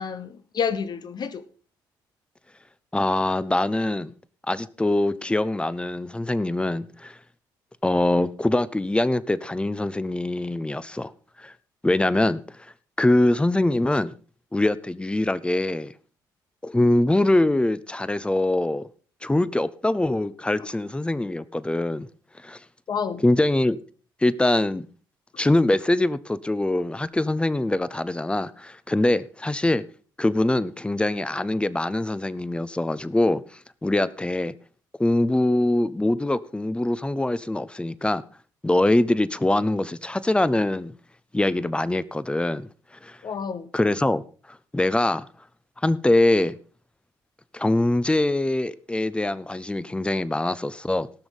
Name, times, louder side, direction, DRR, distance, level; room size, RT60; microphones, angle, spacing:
voice 1, 0.0-1.4 22.9-23.2 43.2-43.7, left 6 dB, 50° left, 1.0 m, -29 dB
voice 2, 2.9-4.1 4.5-7.2 7.8-11.1 11.4-11.5 11.8-12.7 13.0-14.1 14.5-15.9 16.6-18.9 19.2-22.1 22.4-22.6 23.2-23.8 24.2-24.9 25.4-29.8 30.2-33.4 33.8-34.5 35.0-38.2 38.6-40.9 41.3-42.7 43.0-43.2 43.7-44.2 44.5-45.2 45.8-46.6 47.5-51.1, left 1 dB, 10° left, 0.8 m, -23 dB
18.0 x 6.2 x 5.3 m
supercardioid pair, 60°, 9 cm